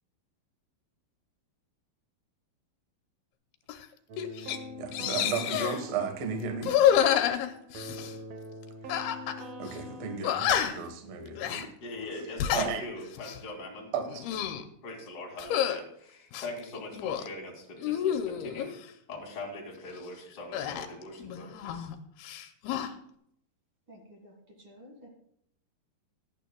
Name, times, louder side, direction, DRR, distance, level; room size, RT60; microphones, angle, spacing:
sound 1, 3.7-3.8 4.2-4.6 4.9-5.8 6.6-8.1 8.9-9.4 9.7-9.8 10.2-10.9 11.4-11.7 12.2-12.7 13.1-13.4 14.0-14.6 15.4-15.8 16.3-17.3 17.8-18.7 20.5-21.9 22.2-22.9, left 10 dB, 80° left, 2.6 m, -28 dB
sound 2, 4.1-10.2, left 1 dB, 90° right, 1.4 m, -44 dB
voice 1, 4.4-6.7 9.0-9.2 9.6-11.7 12.5-12.8 13.9-14.2, right 6 dB, 55° right, 1.9 m, -34 dB
voice 2, 11.8-13.9 14.8-21.9, left 2 dB, 30° left, 2.5 m, -42 dB
voice 3, 23.9-25.1, equal, 40° right, 2.3 m, -52 dB
17.5 x 11.5 x 2.3 m
omnidirectional pair, 4.6 m